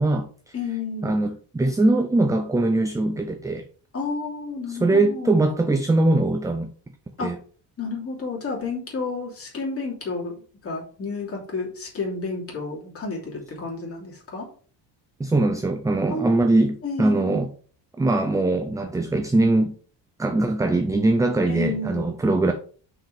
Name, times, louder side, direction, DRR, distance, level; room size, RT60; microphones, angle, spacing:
voice 1, 0.0-0.6 1.0-3.6 4.7-6.7 7.2-7.4 15.2-17.5 18.0-19.7 20.2-22.5, right 2 dB, 10° right, 6 dB, 0.3 m, -21 dB
voice 2, 0.5-1.1 3.9-5.4 7.2-7.3 7.8-14.4 16.1-16.3 16.8-17.4 21.5-22.1, left 4 dB, 30° left, -3 dB, 3.0 m, -31 dB
6.0 x 5.0 x 4.9 m, 0.43 s
cardioid pair, 155°, 44 cm